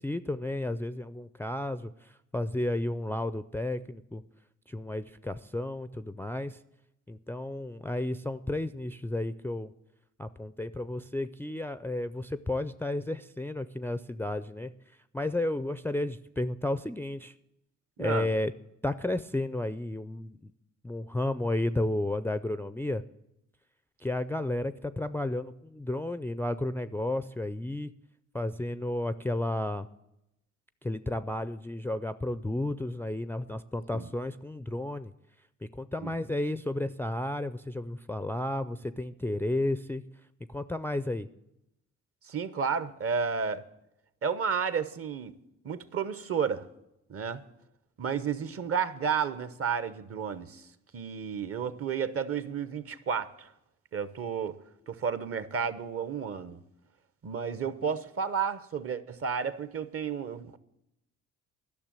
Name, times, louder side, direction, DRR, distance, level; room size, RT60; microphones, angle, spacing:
voice 1, 0.0-4.2 4.7-6.6 7.1-9.7 10.2-14.7 15.1-17.3 18.0-18.5 18.8-20.5 20.8-23.0 24.0-27.9 28.3-29.9 30.8-35.1 35.6-40.0 40.5-41.3, left 1 dB, 10° left, 12 dB, 0.4 m, -32 dB
voice 2, 42.3-43.6 44.2-45.3 45.6-46.7 47.1-47.4 48.0-50.6 50.9-53.5 53.9-54.6 54.9-56.6 57.2-60.6, right 6 dB, 50° right, 14 dB, 0.9 m, -32 dB
12.0 x 6.5 x 8.9 m, 0.84 s
cardioid pair, 90°, 30 cm